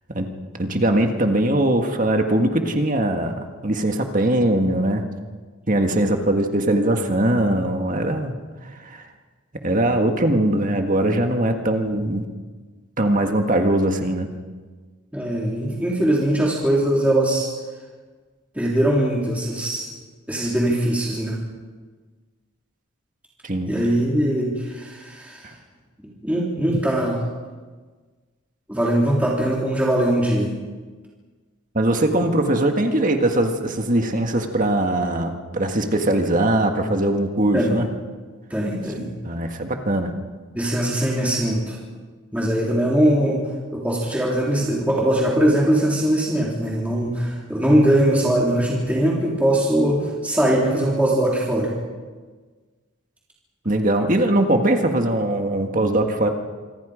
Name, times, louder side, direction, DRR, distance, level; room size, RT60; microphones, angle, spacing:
voice 1, 0.5-5.0 5.7-8.3 8.8-9.0 9.6-12.2 13.0-14.3 23.4-23.7 26.7-26.8 31.7-37.8 39.2-40.1 53.6-56.3, right 1 dB, 35° right, 4 dB, 1.7 m, -21 dB
voice 2, 15.1-17.5 18.5-19.9 20.3-21.4 23.6-25.5 26.2-27.2 28.7-30.5 37.5-37.8 38.5-39.1 40.5-41.8 42.3-43.4 43.7-51.7, right 1 dB, 5° right, -5 dB, 3.4 m, -21 dB
26.5 x 25.0 x 5.1 m, 1.4 s
head